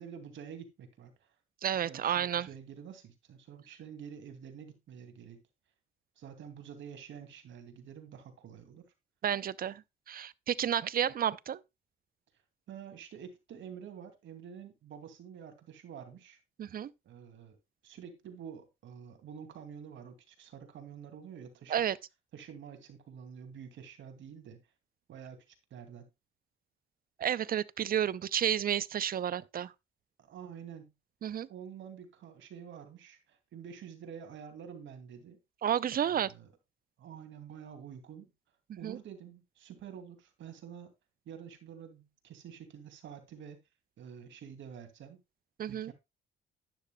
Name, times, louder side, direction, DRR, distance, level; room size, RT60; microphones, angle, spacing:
voice 1, 0.0-1.3 1.8-5.4 6.2-8.9 12.7-16.4 17.0-17.6 17.8-21.8 22.3-24.6 25.1-26.1 30.2-30.9 31.5-35.4 36.0-36.5 37.0-38.3 38.8-40.9 41.2-43.6 44.0-45.2 45.7-45.9, right 8 dB, 70° right, 2.5 m, -48 dB
voice 2, 1.6-2.5 9.2-11.6 16.6-16.9 21.7-22.0 27.2-29.7 31.2-31.5 35.6-36.3 38.8-39.0 45.6-45.9, right 10 dB, 45° right, 0.6 m, -31 dB
12.0 x 10.0 x 2.3 m
cardioid pair, 90°, 20 cm